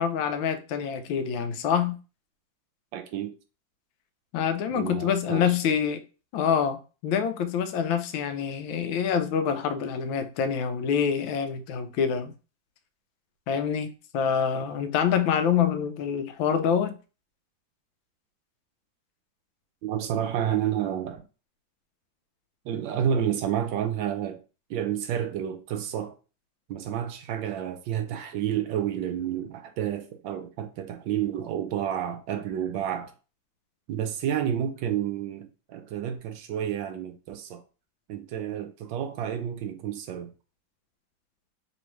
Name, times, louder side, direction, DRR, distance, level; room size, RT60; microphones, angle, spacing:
voice 1, 0.0-2.0 4.3-6.0 6.3-12.3 13.5-16.9, left 7 dB, 85° left, 1.3 m, -26 dB
voice 2, 2.9-3.3 4.7-5.4 19.8-21.2 22.6-24.4 24.7-26.1 26.7-33.1 33.9-37.6 38.1-40.3, right 9 dB, 80° right, 1.3 m, -30 dB
3.5 x 3.1 x 3.0 m
omnidirectional pair, 2.1 m